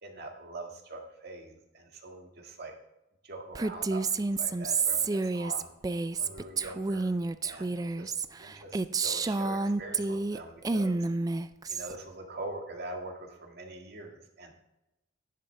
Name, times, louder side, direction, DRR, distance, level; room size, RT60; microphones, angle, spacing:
voice 1, 0.0-2.7 3.2-5.7 6.2-7.1 7.4-8.1 8.4-11.0 11.7-14.5, right 2 dB, 55° right, 2 dB, 1.9 m, -43 dB
Female speech woman speaking, 3.5-10.4 10.6-11.9, right 3 dB, 20° right, 0.3 m, -30 dB
11.5 x 10.5 x 3.3 m, 0.92 s
head